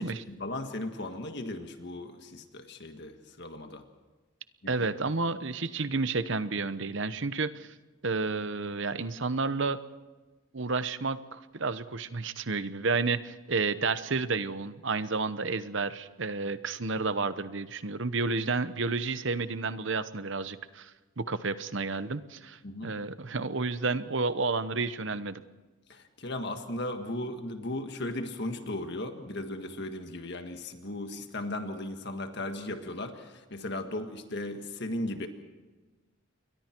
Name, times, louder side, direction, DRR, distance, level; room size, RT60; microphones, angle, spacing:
voice 1, 0.0-3.8 4.6-4.7 22.6-22.9 25.9-35.3, left 1 dB, 50° left, 6 dB, 1.7 m, -36 dB
voice 2, 4.7-7.7 8.0-9.8 10.5-25.4, right 3 dB, 60° right, 13 dB, 0.9 m, -31 dB
29.0 x 22.5 x 4.6 m, 1.2 s
head